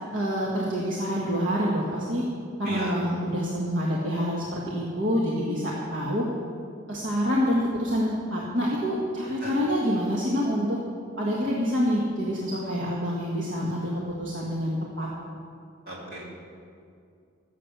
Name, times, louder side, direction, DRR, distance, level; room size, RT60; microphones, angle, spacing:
voice 1, 0.1-2.2 2.6-6.3 6.9-10.8 11.2-13.9 14.2-15.1, equal, 65° right, -4 dB, 1.6 m, -27 dB
voice 2, 2.6-2.9 9.4-9.6 15.8-16.2, right 1 dB, 45° right, -4 dB, 3.3 m, -36 dB
14.5 x 7.5 x 6.8 m, 2.4 s
head